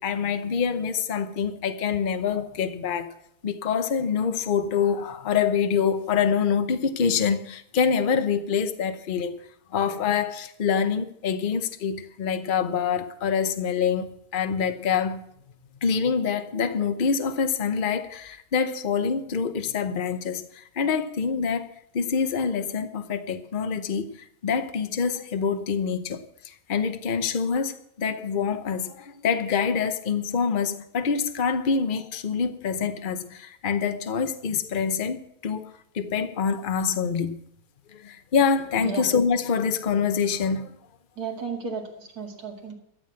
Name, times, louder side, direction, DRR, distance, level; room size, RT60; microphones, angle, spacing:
voice 1, 0.0-3.1 3.4-9.3 9.7-15.3 15.8-37.4 37.9-40.8, left 6 dB, 40° left, 0.9 m, -26 dB
voice 2, 41.2-42.7, right 4 dB, 90° right, 2.7 m, -33 dB
13.0 x 7.6 x 7.7 m
omnidirectional pair, 1.5 m